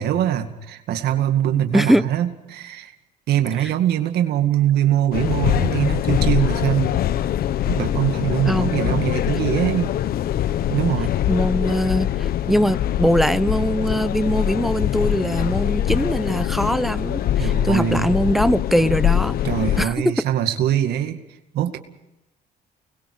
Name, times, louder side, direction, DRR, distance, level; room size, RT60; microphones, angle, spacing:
voice 1, 0.0-2.9 3.3-6.9 7.7-9.9 10.7-11.1 17.4-18.1 19.4-21.2 21.5-21.8, right 11 dB, 75° right, 6 dB, 2.2 m, -22 dB
voice 2, 1.7-2.0 3.6-3.7 8.5-9.0 11.3-19.4 19.8-20.1, equal, ahead, 14 dB, 0.8 m, -21 dB
sound 1, 5.1-19.8, left 11 dB, 65° left, 0.9 m, -23 dB
29.5 x 21.0 x 4.9 m, 0.91 s
cardioid pair, 110°, 17 cm